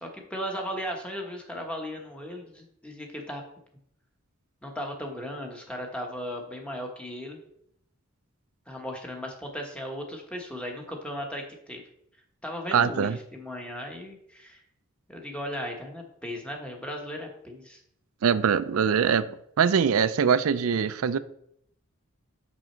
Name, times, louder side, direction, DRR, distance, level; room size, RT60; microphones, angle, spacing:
voice 1, 0.0-3.4 4.6-7.4 8.7-11.8 12.4-14.6 15.1-17.8, equal, 5° left, 1.1 m, -36 dB
voice 2, 12.7-13.2 18.2-19.3 19.6-21.2, right 7 dB, 75° right, 0.4 m, -22 dB
6.2 x 6.2 x 4.4 m
head